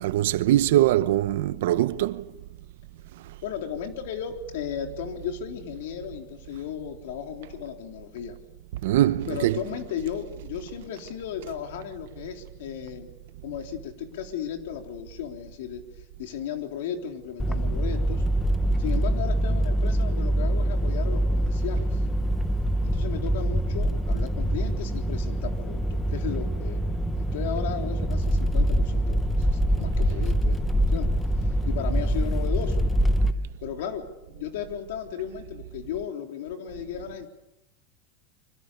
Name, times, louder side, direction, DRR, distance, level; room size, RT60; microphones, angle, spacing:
voice 1, 0.0-2.3 8.8-9.6, right 13 dB, 70° right, 0.9 m, -22 dB
voice 2, 3.4-8.4 9.3-13.1 13.4-15.8 16.2-18.2 18.8-22.0 22.8-26.8 27.3-31.1 31.7-32.8 33.6-37.3, left 9 dB, 75° left, 3.8 m, -35 dB
sound 1, 17.4-33.3, right 1 dB, 5° left, 1.0 m, -24 dB
25.5 x 25.0 x 6.9 m
supercardioid pair, 170°, 0 cm